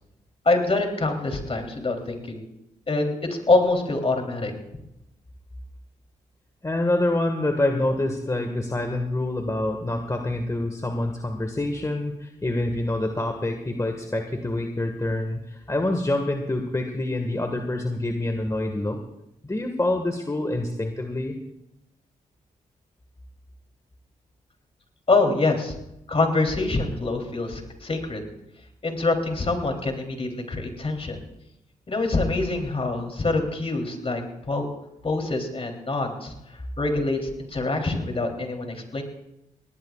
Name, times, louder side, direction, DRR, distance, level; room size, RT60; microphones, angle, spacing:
voice 1, 0.4-2.4 2.9-4.5 25.1-25.7 26.1-28.3 28.8-31.2 31.9-34.7 35.0-39.0, left 3 dB, 40° left, 3 dB, 3.4 m, -25 dB
voice 2, 6.6-19.0 19.4-21.4, left 1 dB, 20° left, 4 dB, 1.7 m, -26 dB
21.5 x 18.5 x 2.5 m, 0.87 s
supercardioid pair, 55°, 15 cm